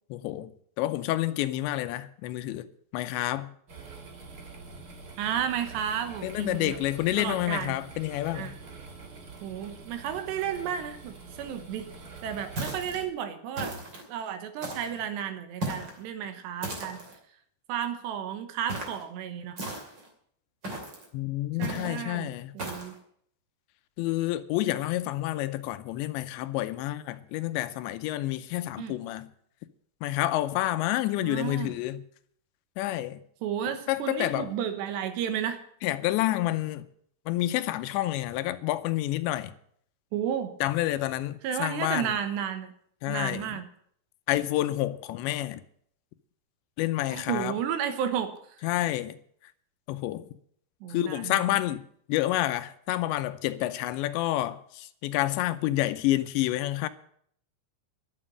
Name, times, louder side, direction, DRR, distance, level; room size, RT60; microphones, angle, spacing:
voice 1, 0.1-0.5 0.8-2.7 2.9-3.5 6.2-8.5 21.1-22.5 24.0-29.3 30.0-32.0 32.8-33.2 33.9-34.5 35.8-36.8 37.3-39.5 40.6-42.2 43.0-43.6 44.3-45.6 46.8-47.6 48.6-49.1 49.9-50.3 50.9-51.8 52.1-56.9, left 15 dB, 85° left, 3.0 m, -29 dB
sound 1, 3.7-13.1, right 4 dB, 55° right, 1.0 m, -46 dB
voice 2, 5.2-6.8 7.2-7.8 8.3-8.5 9.4-11.9 12.2-13.8 14.1-17.0 17.7-19.6 21.6-22.9 28.8-29.0 31.2-31.7 33.4-35.6 40.1-40.5 41.4-42.7 43.1-43.7 47.1-48.3 50.8-51.6, right 9 dB, 75° right, 3.3 m, -32 dB
sound 2, 12.6-13.0 13.5-14.0 14.6-15.0 15.6-16.0 16.6-17.1 18.7-19.0 19.6-20.1 20.6-21.0 21.6-22.0 22.6-22.9, right 1 dB, 30° right, 2.6 m, -36 dB
11.5 x 7.6 x 10.0 m
omnidirectional pair, 5.1 m